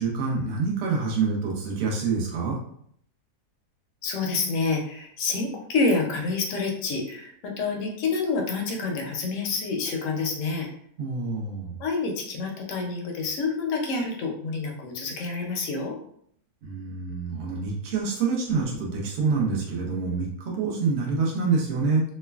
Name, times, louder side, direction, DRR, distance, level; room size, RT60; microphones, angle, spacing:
voice 1, 0.0-2.6 11.0-11.7 16.6-22.0, right 4 dB, 55° right, -2 dB, 0.7 m, -26 dB
voice 2, 4.0-10.7 11.8-15.9, left 4 dB, 65° left, 1 dB, 0.8 m, -28 dB
3.0 x 2.2 x 2.3 m, 0.67 s
omnidirectional pair, 1.8 m